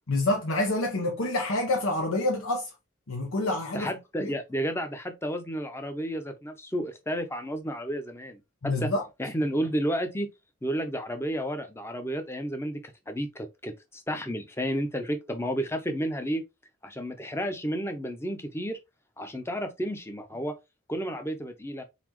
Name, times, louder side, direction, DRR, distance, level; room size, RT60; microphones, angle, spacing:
voice 1, 0.1-2.7 3.1-3.9 4.2-4.3 8.6-9.0, left 2 dB, 85° left, 0.9 m, -27 dB
voice 2, 3.7-8.9 9.2-10.3 10.6-12.8 13.1-16.4 16.8-18.8 19.2-20.5 20.9-21.8, equal, 10° left, 0.7 m, -31 dB
4.1 x 4.1 x 3.0 m
head